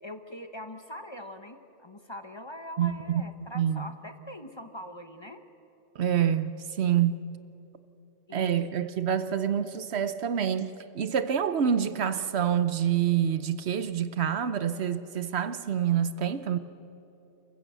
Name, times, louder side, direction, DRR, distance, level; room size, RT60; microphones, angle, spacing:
voice 1, 0.0-5.4 8.3-8.6, left 1 dB, 25° left, 0.9 m, -42 dB
voice 2, 2.8-3.9 5.9-7.2 8.3-16.6, right 9 dB, 70° right, 1.0 m, -27 dB
29.5 x 15.0 x 8.1 m
omnidirectional pair, 1.2 m